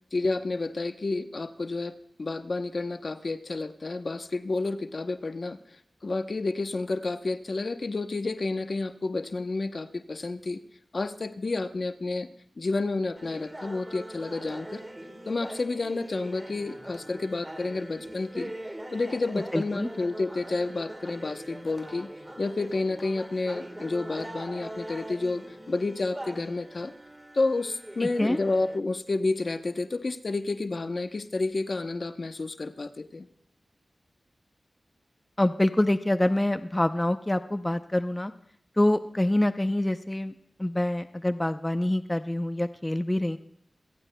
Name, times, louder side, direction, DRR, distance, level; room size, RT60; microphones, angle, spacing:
voice 1, 0.1-5.6 6.0-10.6 10.9-12.3 12.6-14.8 15.3-18.5 18.9-22.1 22.4-26.9 27.3-33.3, left 3 dB, 60° left, 8 dB, 0.8 m, -30 dB
sound 1, 13.2-28.8, right 1 dB, 20° right, 1.5 m, -42 dB
voice 2, 19.5-19.9 28.0-28.4 35.4-38.3 38.8-40.3 40.6-43.4, left 1 dB, 20° left, 10 dB, 0.6 m, -26 dB
26.5 x 17.5 x 2.2 m, 0.68 s
cardioid pair, 50°, 0 cm